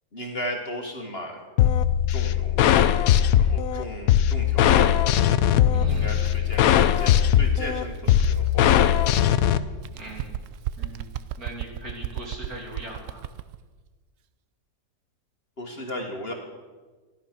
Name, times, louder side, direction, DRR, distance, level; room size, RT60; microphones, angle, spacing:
voice 1, 0.1-1.4 2.1-2.7 3.3-4.9 5.9-8.8 15.6-16.3, equal, 35° left, 2 dB, 1.7 m, -35 dB
sound 1, 1.6-9.6, left 10 dB, 65° left, 1.0 m, -20 dB
voice 2, 5.7-6.2 9.9-10.4 10.8-11.1 11.4-13.2, right 1 dB, 60° right, -2 dB, 3.4 m, -39 dB
Bird, 5.8-9.4 9.8-13.6, right 11 dB, 75° right, 0.7 m, -37 dB
14.0 x 12.5 x 5.9 m, 1.4 s
omnidirectional pair, 1.8 m